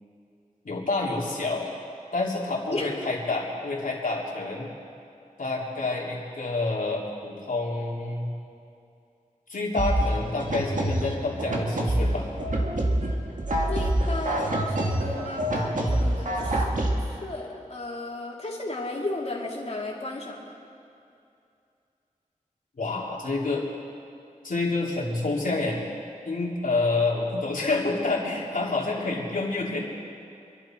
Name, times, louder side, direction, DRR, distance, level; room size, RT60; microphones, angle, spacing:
voice 1, 0.6-1.7 2.1-4.7 5.4-8.3 9.5-12.3 22.8-23.6 24.4-25.8 26.3-29.8, left 3 dB, 75° left, -3 dB, 3.1 m, -28 dB
sound 1, 9.8-17.0, right 1 dB, 65° right, 2.0 m, -26 dB
voice 2, 13.7-20.5, left 2 dB, 50° left, -2 dB, 2.8 m, -34 dB
27.0 x 11.5 x 4.5 m, 2.6 s
wide cardioid pair, 75°, 14 cm